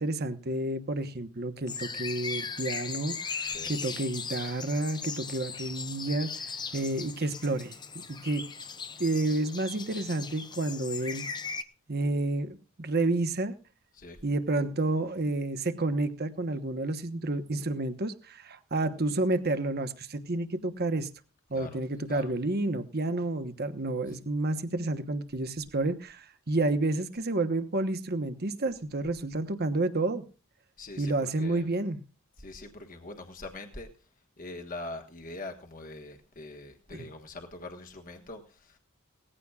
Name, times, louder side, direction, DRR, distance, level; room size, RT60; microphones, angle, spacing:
voice 1, 0.0-8.4 9.0-11.2 11.9-13.5 14.2-21.1 21.5-30.2 31.0-32.0 36.9-37.1, right 2 dB, 45° right, 9 dB, 1.1 m, -30 dB
sound 1, 1.7-11.6, left 5 dB, 20° left, 0.7 m, -38 dB
voice 2, 30.8-31.7 32.4-33.9 34.4-38.8, left 2 dB, 40° left, 4 dB, 1.4 m, -43 dB
19.0 x 15.0 x 2.4 m, 0.35 s
head